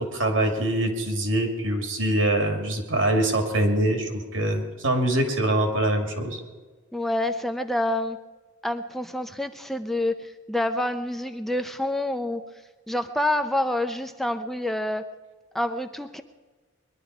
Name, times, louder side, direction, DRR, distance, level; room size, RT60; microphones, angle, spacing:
voice 1, 0.0-6.4, right 1 dB, 85° right, 3 dB, 2.6 m, -24 dB
voice 2, 6.9-8.2 8.6-12.4 12.9-15.1 15.5-16.2, left 1 dB, ahead, 7 dB, 0.5 m, -27 dB
21.5 x 11.5 x 4.8 m, 1.4 s
head